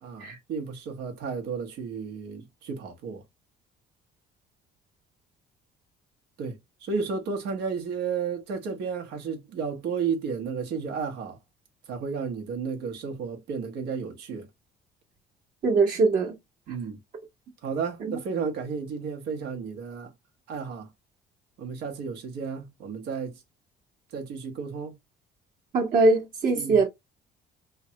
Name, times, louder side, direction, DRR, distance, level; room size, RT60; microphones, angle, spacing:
voice 1, 0.0-3.2 6.4-11.4 11.9-14.5 16.7-17.0 17.6-20.1 20.5-20.9 21.6-23.4 24.1-25.0 26.5-26.9, right 5 dB, 80° right, 1.1 m, -33 dB
voice 2, 15.6-16.3 18.1-18.2 25.7-26.9, right 3 dB, 55° right, 1.2 m, -22 dB
3.4 x 2.2 x 2.8 m
cardioid pair, 110°, 17 cm